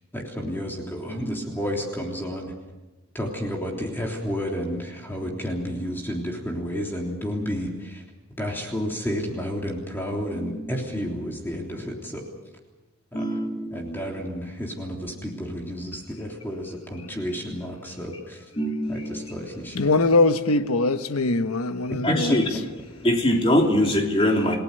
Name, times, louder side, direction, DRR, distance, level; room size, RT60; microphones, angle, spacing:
voice 1, 0.1-2.5 3.1-8.0 8.4-12.2 13.1-13.2 13.7-18.5 18.9-19.9 22.3-22.4, equal, 10° left, 3.4 m, -31 dB
voice 2, 1.1-1.5 5.2-5.3 10.4-10.8 13.1-13.9 18.6-19.3 22.0-22.5 23.0-24.6, left 1 dB, 25° left, 3.1 m, -23 dB
voice 3, 19.7-22.5, left 2 dB, 85° left, 1.2 m, -22 dB
29.0 x 18.0 x 6.8 m
head